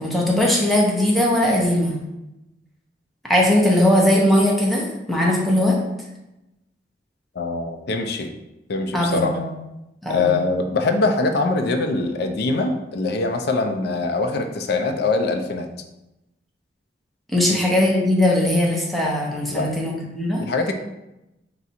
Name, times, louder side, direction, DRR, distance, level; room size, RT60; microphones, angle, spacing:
voice 1, 0.0-1.9 3.2-5.8 8.9-9.4 10.0-10.3 17.3-20.4, left 1 dB, ahead, -3 dB, 0.8 m, -19 dB
voice 2, 7.4-8.3 8.7-9.3 10.1-15.7 17.4-17.6 19.5-19.7 20.4-20.7, left 3 dB, 60° left, 5 dB, 0.4 m, -23 dB
3.9 x 2.4 x 4.2 m, 0.94 s
head